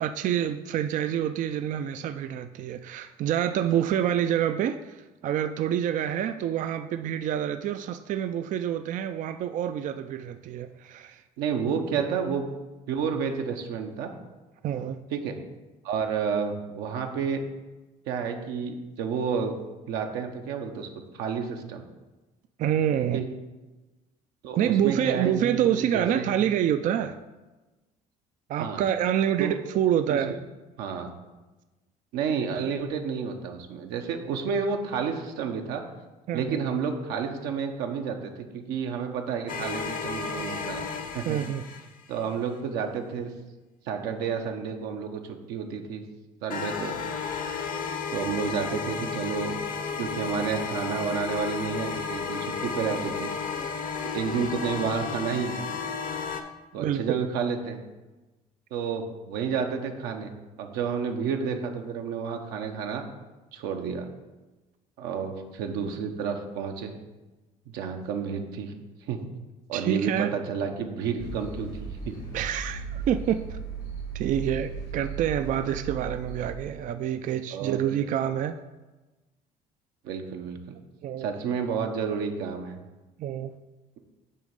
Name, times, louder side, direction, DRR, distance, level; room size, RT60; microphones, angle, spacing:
voice 1, 0.0-11.2 12.0-12.1 14.6-15.0 22.6-23.2 24.6-27.2 28.5-30.3 36.3-36.6 41.2-41.6 56.7-57.3 69.7-70.3 72.3-73.6 74.1-78.6 81.0-81.3 83.2-83.5, right 10 dB, 50° right, 9 dB, 0.4 m, -27 dB
voice 2, 11.4-12.5 12.9-14.1 15.1-15.4 15.8-17.4 18.1-19.6 19.9-20.9 21.1-21.8 23.1-23.2 24.4-25.7 25.9-26.3 28.6-28.8 29.4-29.5 30.1-30.2 30.8-31.1 32.1-35.8 36.3-40.9 41.1-41.4 42.1-43.3 43.9-46.0 46.4-47.0 48.1-49.6 50.0-53.3 54.1-55.6 56.7-57.8 58.7-60.3 60.6-63.0 63.5-64.1 65.0-66.9 67.7-68.7 69.1-69.2 69.7-72.2 77.5-77.8 80.0-80.6 81.2-82.8, right 6 dB, 80° right, 4 dB, 0.9 m, -30 dB
sound 1, 39.5-42.2 46.5-56.4, left 5 dB, 55° left, 0.8 m, -33 dB
sound 2, 71.2-76.6, right 5 dB, 90° left, 2.1 m, -37 dB
8.4 x 3.1 x 5.2 m, 1.1 s
supercardioid pair, 80°, 16 cm